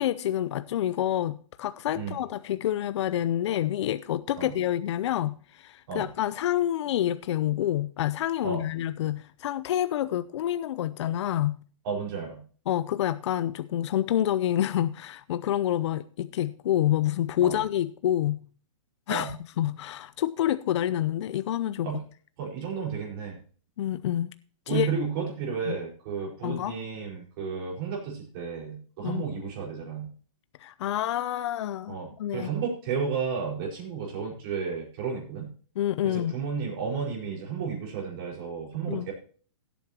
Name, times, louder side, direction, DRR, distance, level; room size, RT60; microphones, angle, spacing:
voice 1, 0.0-11.5 12.7-18.4 19.1-21.9 23.8-24.3 24.7-24.9 25.7-25.8 26.4-26.8 29.0-29.2 30.6-32.5 35.8-36.3 38.9-39.1, left 12 dB, 55° left, 0.6 m, -28 dB
voice 2, 11.8-12.4 17.4-17.6 19.1-19.3 21.8-22.0 22.4-23.4 24.7-30.1 31.9-35.5 36.0-39.1, right 6 dB, 45° right, 4.7 m, -32 dB
17.5 x 8.3 x 2.9 m
hypercardioid pair, 150°, 17 cm